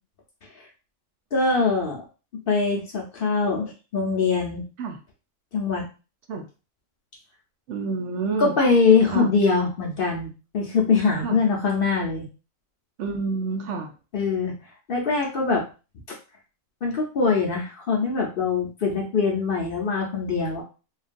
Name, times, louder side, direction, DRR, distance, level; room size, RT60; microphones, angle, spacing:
voice 1, 1.3-2.0 2.5-4.6 5.5-5.8 8.4-10.3 10.5-12.3 14.1-14.5 14.9-15.6 16.8-20.6, left 4 dB, 50° left, -1 dB, 0.8 m, -22 dB
voice 2, 7.7-8.5 9.0-9.3 11.2-11.4 13.0-13.9, right 4 dB, 70° right, 4 dB, 0.8 m, -28 dB
3.2 x 2.3 x 2.5 m, 0.32 s
omnidirectional pair, 1.4 m